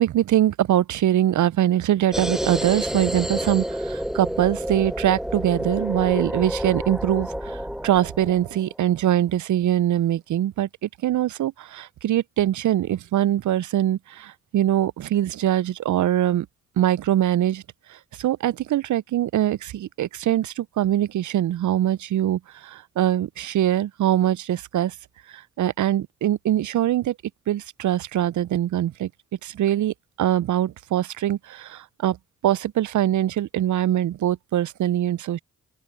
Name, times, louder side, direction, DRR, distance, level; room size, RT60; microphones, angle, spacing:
voice 1, 0.0-16.5 16.8-17.6 17.9-24.9 25.3-27.1 27.5-29.1 29.4-32.2 32.4-35.4, right 12 dB, 60° right, 0.6 m, -23 dB
sound 1, 2.1-8.7, equal, ahead, 1.0 m, -29 dB
open air
hypercardioid pair, 40°, 34 cm